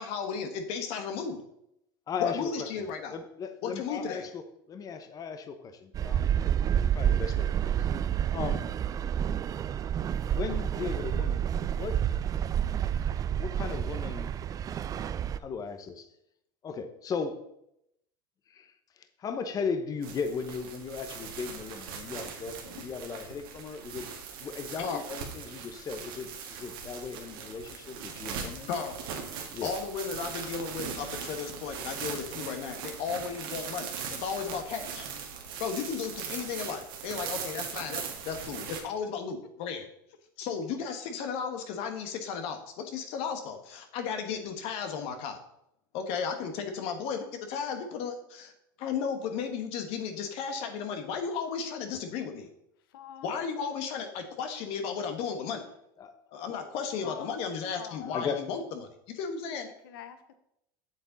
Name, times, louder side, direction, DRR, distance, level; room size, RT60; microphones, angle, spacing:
voice 1, 0.0-1.4 2.2-3.2 3.6-4.2 24.8-25.0 28.7-29.0 29.6-33.9 34.2-35.1 35.6-39.9 40.4-45.4 45.9-48.5 48.8-52.5 53.2-55.6 56.3-59.7, left 6 dB, 60° left, 6 dB, 1.3 m, -34 dB
voice 2, 2.1-4.4 4.7-6.3 6.7-7.9 8.3-8.7 10.3-12.0 13.4-14.3 14.6-14.8 15.0-16.1 16.6-17.4 18.5-24.1 24.4-28.7 29.5-29.8 56.0-56.2 56.5-56.6 58.0-58.4, left 5 dB, 30° left, 8 dB, 0.8 m, -37 dB
sound 1, 5.9-15.4, right 9 dB, 30° right, 0.4 m, -29 dB
sound 2, 20.0-38.8, right 6 dB, 75° right, 1.9 m, -40 dB
voice 3, 52.9-53.4 57.0-57.4 57.8-58.1 59.8-60.4, left 9 dB, 80° left, 10 dB, 0.8 m, -45 dB
8.0 x 7.2 x 3.9 m, 0.79 s
supercardioid pair, 105°, 12 cm